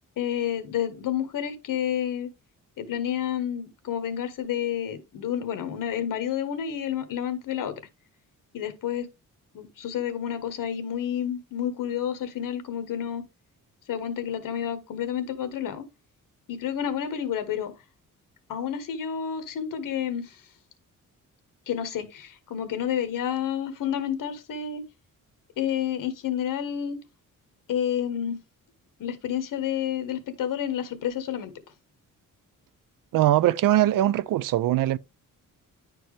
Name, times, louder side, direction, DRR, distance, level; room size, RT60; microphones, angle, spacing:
voice 1, 0.2-2.3 2.8-7.7 8.5-9.1 9.5-13.2 13.9-15.8 16.5-17.7 18.5-20.4 21.7-24.8 25.6-27.0 27.7-28.4 29.0-31.5, left 9 dB, 75° left, 1.4 m, -30 dB
voice 2, 33.1-35.0, right 13 dB, 75° right, 0.5 m, -21 dB
10.5 x 4.5 x 3.2 m
wide cardioid pair, 180°, 33 cm